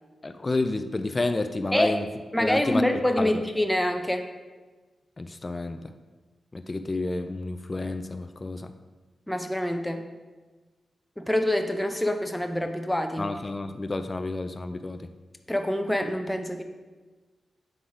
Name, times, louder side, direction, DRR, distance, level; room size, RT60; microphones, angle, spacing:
voice 1, 0.2-2.0 2.4-2.8 3.2-3.4 5.2-5.9 6.5-8.7 13.2-15.1, left 2 dB, 35° left, 8 dB, 0.5 m, -30 dB
voice 2, 2.3-4.2 9.3-10.1 11.2-13.3 15.5-16.6, left 1 dB, 5° left, 5 dB, 0.8 m, -26 dB
7.8 x 3.8 x 4.9 m, 1.3 s
cardioid pair, 50°, 0 cm